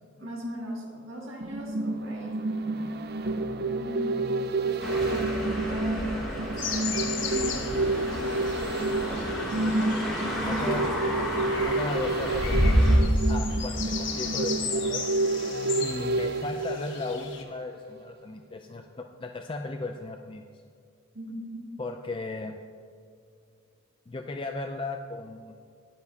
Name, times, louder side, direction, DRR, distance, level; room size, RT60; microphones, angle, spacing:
voice 1, 0.2-2.4 3.6-4.2 4.6-9.3 10.3-11.1 21.1-21.7, equal, 80° right, -2 dB, 1.9 m, -39 dB
sound 1, 1.4-17.6 18.0-18.1, right 2 dB, 50° right, 0.5 m, -29 dB
sound 2, 4.8-13.0, equal, ahead, 2.5 m, -29 dB
sound 3, 6.6-17.4, left 6 dB, 60° left, 1.4 m, -37 dB
voice 2, 10.4-10.9 11.6-15.0 15.8-20.4 21.8-22.6 24.1-25.6, left 2 dB, 25° left, 4 dB, 0.4 m, -36 dB
20.5 x 7.0 x 2.8 m, 2.3 s
head